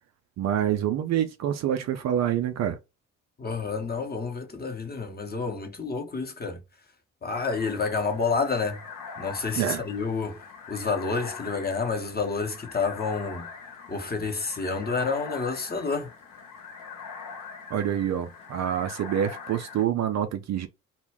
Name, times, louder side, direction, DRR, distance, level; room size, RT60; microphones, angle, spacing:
voice 1, 0.4-2.8 9.6-9.8 17.7-20.7, right 10 dB, 45° right, 0.4 m, -26 dB
voice 2, 3.4-6.6 7.2-8.8 9.2-13.5 13.9-16.1, left 4 dB, 25° left, 0.8 m, -29 dB
sound 1, 7.3-19.8, left 5 dB, 60° left, 1.0 m, -43 dB
2.1 x 2.1 x 3.3 m
hypercardioid pair, 45°, 38 cm